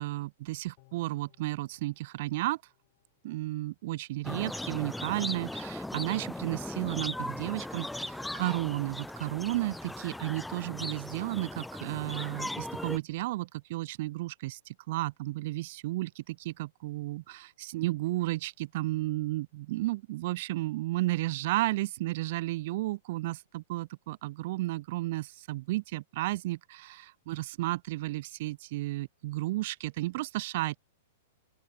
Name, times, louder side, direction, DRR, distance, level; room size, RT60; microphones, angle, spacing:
voice 1, 0.0-2.6 3.2-30.8, right 18 dB, 55° right, 0.5 m, -33 dB
sound 1, 0.8-4.1 4.5-4.6, left 29 dB, 45° left, 6.2 m, -67 dB
sound 2, 4.2-13.0, left 1 dB, 5° left, 0.5 m, -38 dB
open air
hypercardioid pair, 140°, 0 cm